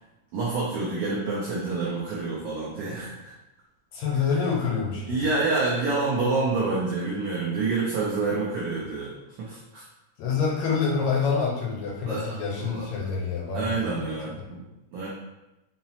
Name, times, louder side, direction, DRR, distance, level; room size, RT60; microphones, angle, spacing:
voice 1, 0.3-3.3 5.1-9.1 9.4-9.8 12.1-12.3 12.6-12.9 13.5-14.6 14.9-15.1, right 3 dB, 85° right, -5 dB, 1.3 m, -27 dB
voice 2, 3.9-5.3 10.2-14.2, left 5 dB, 80° left, -2 dB, 1.8 m, -27 dB
5.6 x 2.0 x 2.8 m, 0.97 s
omnidirectional pair, 3.3 m